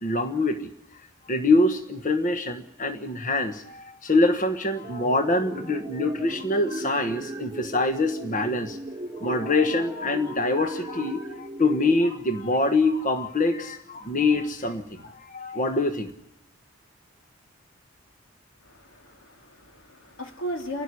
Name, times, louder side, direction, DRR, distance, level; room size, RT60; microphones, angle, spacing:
voice 1, 0.0-8.8 9.2-16.1, left 2 dB, 40° left, 6 dB, 1.3 m, -25 dB
sound 1, 4.8-12.0, right 1 dB, 20° right, 1.2 m, -37 dB
voice 2, 18.6-20.8, equal, 75° left, 3 dB, 2.6 m, -36 dB
30.0 x 12.5 x 9.7 m, 0.86 s
head